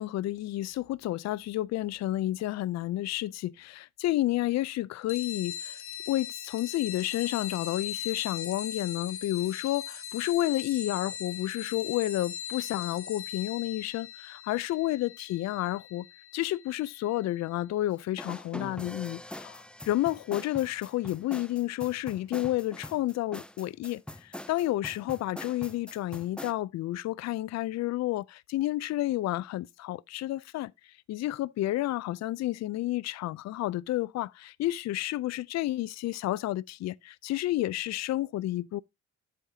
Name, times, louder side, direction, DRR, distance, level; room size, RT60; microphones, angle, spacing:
voice 1, 0.0-5.8 6.1-16.1 16.3-30.7 31.1-38.8, left 15 dB, 60° left, 0.4 m, -31 dB
sound 1, 5.1-17.2, left 9 dB, 45° left, 1.2 m, -40 dB
sound 2, 18.2-26.5, left 1 dB, 5° left, 0.4 m, -43 dB
8.8 x 8.2 x 2.8 m
cardioid pair, 90°, 30 cm